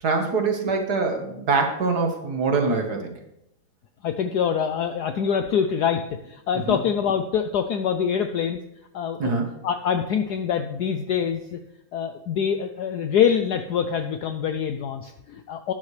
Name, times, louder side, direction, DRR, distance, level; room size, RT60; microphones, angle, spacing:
voice 1, 0.0-3.1 6.6-6.8 9.2-9.5, right 4 dB, 50° right, 3 dB, 1.9 m, -24 dB
voice 2, 4.0-8.6 8.9-9.3 9.6-11.6 11.9-15.7, left 7 dB, 70° left, 8 dB, 0.9 m, -25 dB
12.0 x 9.7 x 3.3 m, 0.82 s
omnidirectional pair, 2.2 m